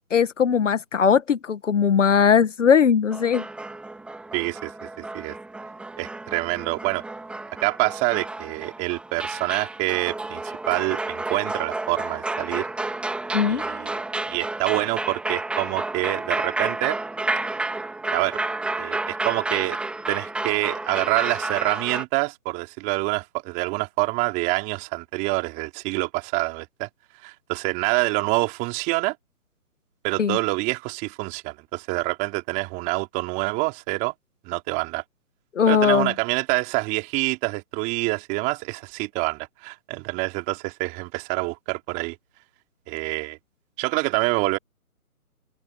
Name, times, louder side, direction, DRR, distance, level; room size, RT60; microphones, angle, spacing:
voice 1, 0.1-3.5 13.3-13.6 30.2-30.4 35.6-36.1, left 7 dB, 55° left, 1.8 m, -19 dB
sound 1, 3.1-22.0, right 2 dB, ahead, 4.1 m, -31 dB
voice 2, 4.3-5.4 6.0-7.0 7.6-12.7 13.5-14.0 14.3-17.0 18.1-18.4 18.8-19.8 20.1-26.9 27.2-29.2 30.0-34.1 34.4-35.0 35.7-42.2 42.9-43.4 43.8-44.6, right 25 dB, 15° right, 4.1 m, -26 dB
open air
hypercardioid pair, 155°, 45 cm